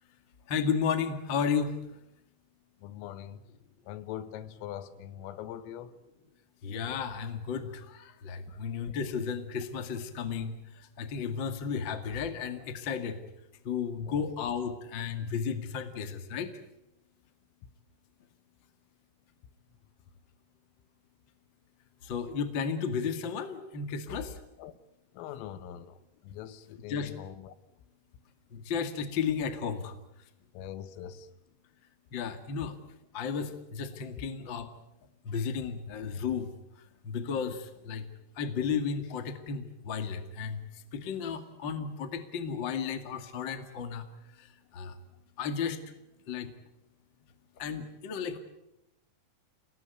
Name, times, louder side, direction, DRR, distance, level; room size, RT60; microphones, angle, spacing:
voice 1, 0.5-1.8 6.6-13.2 13.6-16.5 22.0-24.4 26.9-27.1 28.5-29.9 32.1-32.8 33.1-34.7 35.2-36.5 37.0-38.0 38.3-44.1 44.4-45.0 45.4-45.8 46.3-46.5 47.6-48.4, left 6 dB, 60° left, 1.2 m, -33 dB
voice 2, 2.8-3.4 3.9-5.9 8.5-8.6 14.1-14.3 24.6-24.7 25.2-26.0 26.2-27.5 30.5-31.3, left 11 dB, 90° left, 3.9 m, -42 dB
29.0 x 19.0 x 9.4 m
omnidirectional pair, 5.8 m